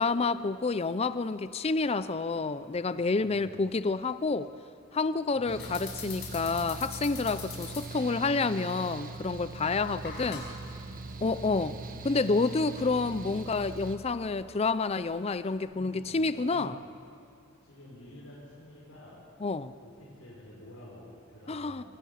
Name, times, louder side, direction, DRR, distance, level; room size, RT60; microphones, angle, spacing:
voice 1, 0.0-4.5 4.9-10.4 11.2-11.7 12.0-16.7 19.4-19.7 21.5-21.8, left 3 dB, 30° left, 14 dB, 0.5 m, -29 dB
voice 2, 3.1-3.7 5.3-5.7 7.7-8.6 10.0-10.3 10.6-12.4 15.7-16.8 17.6-19.3 19.8-21.9, left 1 dB, 85° left, -5 dB, 6.2 m, -51 dB
sound 1, 5.5-15.6, left 5 dB, 60° left, 5.8 m, -47 dB
Mechanical fan, 5.5-14.0, right 3 dB, 45° right, 1.4 m, -42 dB
25.5 x 23.5 x 5.7 m, 2.3 s
head